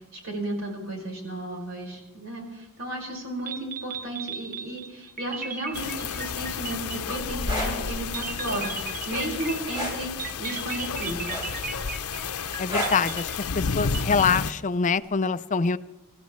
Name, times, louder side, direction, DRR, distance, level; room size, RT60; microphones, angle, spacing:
voice 1, 0.1-11.5, right 1 dB, 65° right, -1 dB, 5.3 m, -34 dB
sound 1, 3.2-3.3 3.5-7.4 8.1-14.4, right 5 dB, 40° right, 0.8 m, -37 dB
sound 2, 5.7-14.5, left 5 dB, 80° left, 0.7 m, -32 dB
sound 3, 7.5-7.7 9.7-10.0 11.3-11.7 12.7-13.0 14.4-14.6, equal, 20° right, 5.7 m, -29 dB
voice 2, 12.6-15.8, left 5 dB, 35° left, 14 dB, 0.4 m, -25 dB
29.0 x 15.0 x 3.2 m, 0.96 s
head